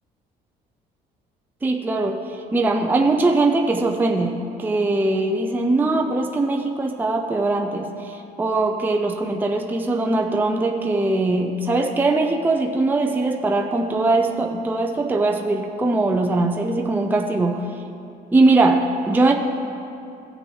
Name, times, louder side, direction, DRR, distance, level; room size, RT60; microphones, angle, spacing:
voice 1, 1.6-17.6 18.3-19.3, right 2 dB, 10° right, 2 dB, 0.5 m, -21 dB
16.5 x 6.4 x 3.2 m, 2.8 s
cardioid pair, 110°, 17 cm